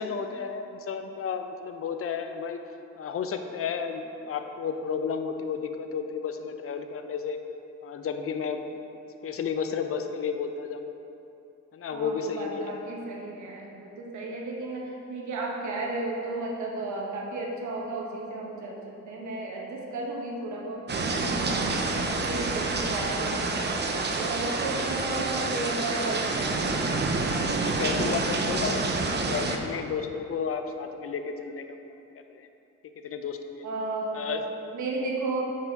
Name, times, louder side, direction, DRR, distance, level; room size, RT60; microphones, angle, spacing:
voice 1, 0.0-2.6 3.0-7.4 7.8-8.6 9.2-10.8 11.7-12.7 27.4-31.9 32.3-32.5 33.0-33.7 34.1-34.4, left 6 dB, 50° left, 6 dB, 0.7 m, -32 dB
voice 2, 11.9-21.1 21.4-26.8 33.6-35.4, right 2 dB, 70° right, -1 dB, 1.4 m, -34 dB
sound 1, 20.9-29.6, right 3 dB, 35° right, 0.8 m, -28 dB
9.1 x 4.8 x 4.6 m, 2.8 s
cardioid pair, 90°, 30 cm